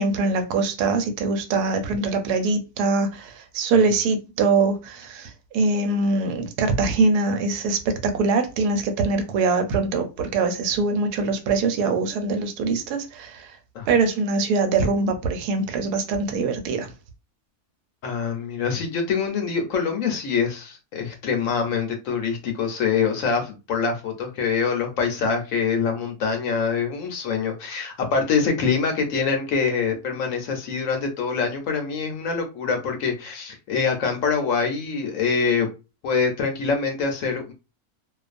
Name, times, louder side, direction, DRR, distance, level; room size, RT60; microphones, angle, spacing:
voice 1, 0.0-13.6 13.9-16.9, right 3 dB, 85° right, 1.1 m, -23 dB
voice 2, 18.0-35.7 36.0-37.5, left 5 dB, 65° left, 0.9 m, -25 dB
2.5 x 2.3 x 2.4 m
omnidirectional pair, 1.6 m